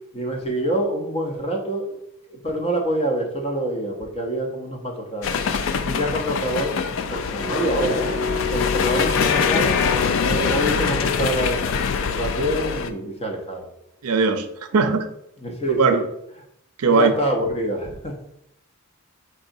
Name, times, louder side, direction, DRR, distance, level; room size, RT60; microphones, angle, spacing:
voice 1, 0.1-1.9 2.3-5.4 5.8-8.1 8.5-9.8 10.2-11.6 12.0-13.7 15.4-16.0 16.9-18.4, right 1 dB, 25° left, 1 dB, 0.7 m, -26 dB
sound 1, 5.2-12.9, left 6 dB, 60° left, 0.3 m, -23 dB
sound 2, 7.4-13.2, left 4 dB, 25° right, 0.7 m, -31 dB
voice 2, 14.0-14.5 14.7-15.1 15.8-16.0 16.8-17.1, right 4 dB, 85° right, 7 dB, 0.5 m, -18 dB
4.6 x 3.9 x 2.6 m, 0.78 s
head